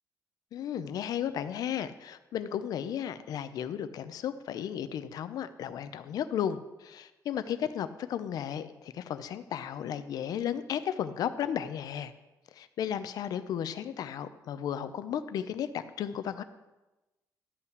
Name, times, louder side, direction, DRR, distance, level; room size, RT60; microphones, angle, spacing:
voice 1, 0.5-12.1 12.5-16.4, left 9 dB, 75° left, 12 dB, 0.7 m, -34 dB
12.5 x 5.8 x 8.0 m, 1.1 s
cardioid pair, 150°, 7 cm